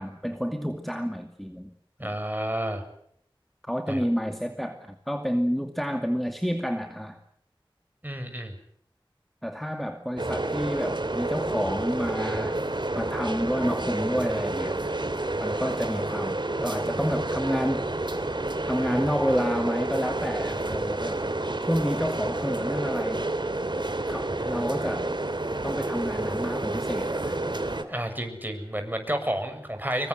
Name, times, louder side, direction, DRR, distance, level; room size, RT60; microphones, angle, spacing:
voice 1, 0.0-1.7 2.0-2.2 3.6-7.2 9.4-12.6 13.0-14.9 15.4-17.9 18.7-21.3 21.6-23.3 24.1-25.2 25.6-27.5, equal, ahead, 5 dB, 2.3 m, -29 dB
voice 2, 2.0-2.8 3.9-4.0 8.0-8.6 15.5-15.6 24.4-24.9 27.9-30.1, right 1 dB, 20° right, 6 dB, 6.9 m, -31 dB
sound 1, 10.2-27.8, right 2 dB, 60° right, 2.9 m, -29 dB
26.0 x 23.0 x 8.1 m, 0.69 s
wide cardioid pair, 45°, 9 cm